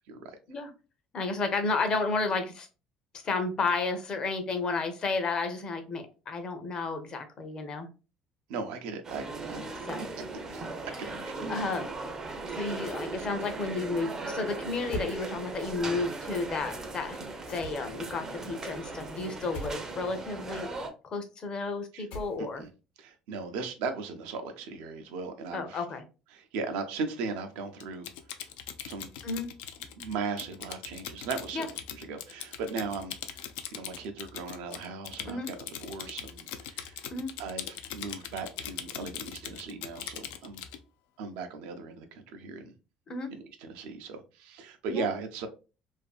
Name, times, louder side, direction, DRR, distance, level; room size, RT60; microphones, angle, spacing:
voice 1, 1.1-2.7 3.1-7.9 9.8-10.1 10.9-11.1 11.5-11.9 12.5-20.9 21.1-22.6 25.5-26.0 29.2-29.5 31.5-31.7 35.3-35.5 37.1-37.3 43.1-43.3 44.9-45.0, left 3 dB, 35° left, 7 dB, 0.6 m, -32 dB
voice 2, 8.5-9.7 10.5-10.7 11.0-11.6 13.2-13.3 21.9-22.1 22.4-22.7 23.0-25.8 26.3-28.1 28.8-29.1 29.9-31.7 31.9-37.0 37.4-40.6 41.2-42.7 43.3-45.5, right 4 dB, 85° right, 7 dB, 0.5 m, -37 dB
sound 1, 9.0-20.9, right 3 dB, 25° right, 0.4 m, -38 dB
sound 2, 14.9-15.2 17.5-18.0 19.5-19.8 22.1-22.6, left 1 dB, 65° left, 0.8 m, -39 dB
Typing, 27.8-40.8, left 9 dB, 85° left, 0.3 m, -41 dB
2.5 x 2.5 x 2.3 m, 0.32 s
cardioid pair, 130°, 2 cm